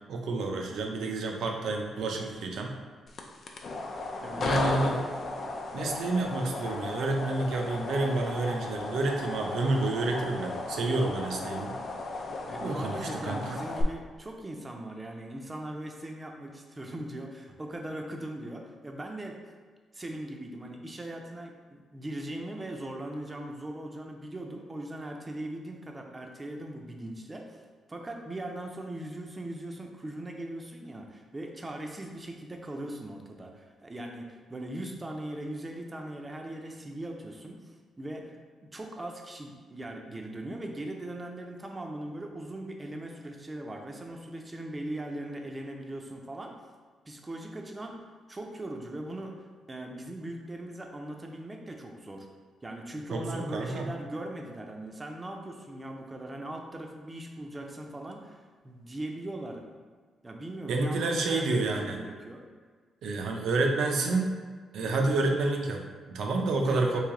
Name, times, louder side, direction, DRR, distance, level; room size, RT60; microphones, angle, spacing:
voice 1, 0.1-2.7 4.4-5.0 5.7-11.7 12.6-13.6 53.1-53.9 60.7-62.0 63.0-64.4 64.7-67.0, right 2 dB, 75° right, 2 dB, 0.5 m, -29 dB
sound 1, 3.1-13.8, left 3 dB, 55° left, 0.4 m, -35 dB
voice 2, 12.5-19.4 19.9-27.6 27.9-38.3 38.6-46.5 47.1-48.0 48.3-49.4 49.7-52.3 52.6-59.6 60.2-62.4 66.6-67.0, right 1 dB, 20° right, 2 dB, 0.5 m, -40 dB
3.2 x 2.7 x 3.7 m, 1.5 s
cardioid pair, 110°, 0 cm